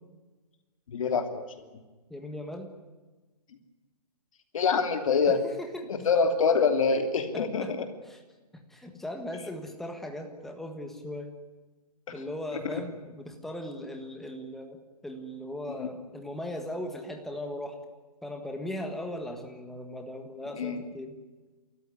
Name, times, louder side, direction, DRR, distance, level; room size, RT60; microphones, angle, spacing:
voice 1, 0.9-1.4 4.5-5.4 5.9-7.8 12.5-12.8 15.8-15.9 20.6-20.8, left 5 dB, 55° left, 7 dB, 3.1 m, -25 dB
voice 2, 2.1-2.7 5.3-5.9 7.3-7.7 8.0-8.2 8.7-11.3 12.1-17.8 18.2-21.1, left 1 dB, ahead, 4 dB, 1.5 m, -38 dB
30.0 x 14.0 x 9.7 m, 1.2 s
hypercardioid pair, 165°, 21 cm